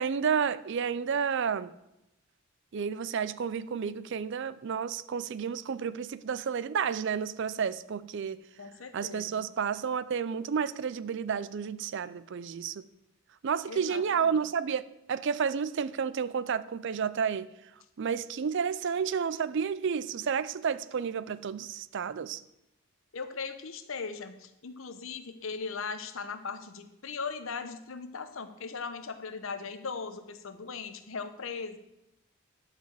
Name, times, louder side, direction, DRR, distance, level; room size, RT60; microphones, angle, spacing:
voice 1, 0.0-1.7 2.7-8.4 8.9-12.9 13.4-14.8 15.1-17.5 18.0-22.4, right 6 dB, 55° right, 16 dB, 0.4 m, -31 dB
voice 2, 8.6-9.5 13.7-14.4 23.1-31.8, left 5 dB, 65° left, 9 dB, 0.9 m, -39 dB
11.5 x 4.9 x 7.4 m, 0.87 s
head